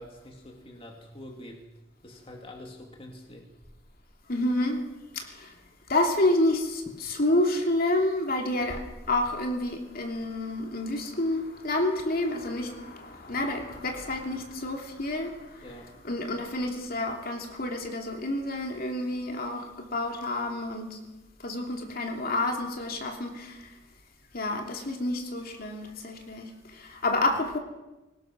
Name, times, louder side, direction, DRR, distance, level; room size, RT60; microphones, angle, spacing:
voice 1, 0.0-1.7 2.0-3.5 15.6-15.9, left 1 dB, 30° left, 1 dB, 2.5 m, -45 dB
voice 2, 4.3-4.9 5.1-5.5 5.9-15.7 16.0-21.0 21.4-23.7 24.3-27.6, left 1 dB, 50° left, 2 dB, 2.9 m, -29 dB
23.0 x 19.5 x 6.2 m, 1.0 s
head